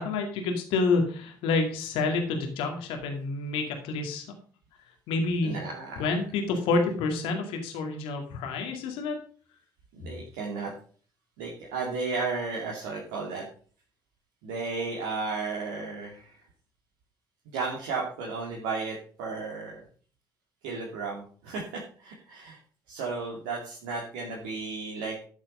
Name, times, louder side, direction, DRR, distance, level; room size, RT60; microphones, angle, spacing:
voice 1, 0.0-4.3 5.1-5.6 6.0-9.2, left 3 dB, 60° left, 3 dB, 2.3 m, -28 dB
voice 2, 5.4-6.1 9.9-10.7 11.4-13.4 14.4-16.3 17.5-19.8 20.6-22.6 22.9-25.3, right 4 dB, 70° right, -2 dB, 2.6 m, -34 dB
13.0 x 7.3 x 5.4 m, 0.43 s
figure-of-eight pair, 50°, 10 cm